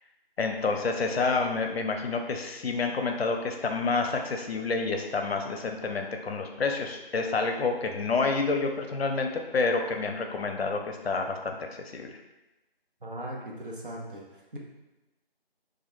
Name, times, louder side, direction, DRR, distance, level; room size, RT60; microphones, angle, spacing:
voice 1, 0.4-12.1, left 4 dB, 85° left, 3 dB, 0.5 m, -29 dB
voice 2, 13.0-14.6, right 1 dB, 60° right, -2 dB, 0.6 m, -39 dB
2.2 x 2.0 x 2.9 m, 1.0 s
figure-of-eight pair, 175°, 30 cm